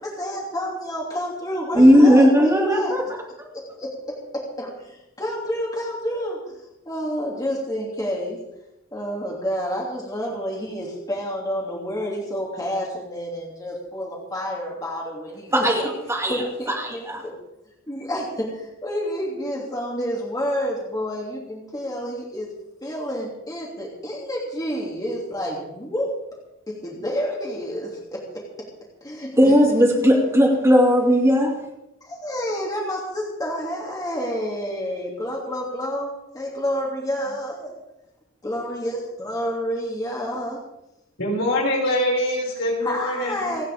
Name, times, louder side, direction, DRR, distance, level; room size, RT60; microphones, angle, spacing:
voice 1, 0.0-3.0 3.5-3.9 4.3-6.4 6.8-8.4 8.9-15.5 16.3-17.3 17.9-22.5 22.8-26.1 26.7-28.4 29.0-29.5 32.0-37.7 38.4-40.6 42.8-43.6, equal, 20° left, -3 dB, 2.9 m, -29 dB
voice 2, 1.7-3.0 15.5-16.4 16.8-17.2 29.4-31.5, equal, 15° right, -1 dB, 2.7 m, -16 dB
voice 3, 41.2-43.6, left 1 dB, 65° left, -3 dB, 6.3 m, -24 dB
29.0 x 9.8 x 3.7 m, 0.89 s
head